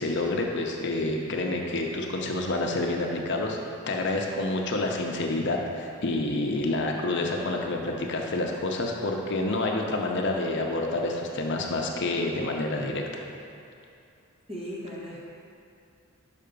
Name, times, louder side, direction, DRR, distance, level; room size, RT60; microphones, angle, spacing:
voice 1, 0.0-3.6 3.9-13.2, left 2 dB, 60° left, 1 dB, 0.7 m, -28 dB
voice 2, 14.5-15.3, equal, 30° right, -6 dB, 1.4 m, -37 dB
5.8 x 5.6 x 5.2 m, 2.6 s
head